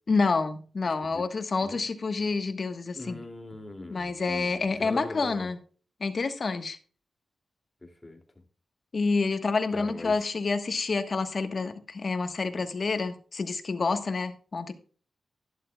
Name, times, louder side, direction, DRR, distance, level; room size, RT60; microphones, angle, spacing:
voice 1, 0.1-3.2 3.9-5.6 6.0-6.8 8.9-14.7, left 4 dB, 45° left, 9 dB, 1.2 m, -28 dB
voice 2, 2.9-5.5 7.8-8.2 9.7-10.3, left 2 dB, 15° left, 4 dB, 2.5 m, -41 dB
11.5 x 11.0 x 2.3 m, 0.40 s
wide cardioid pair, 105°, 0 cm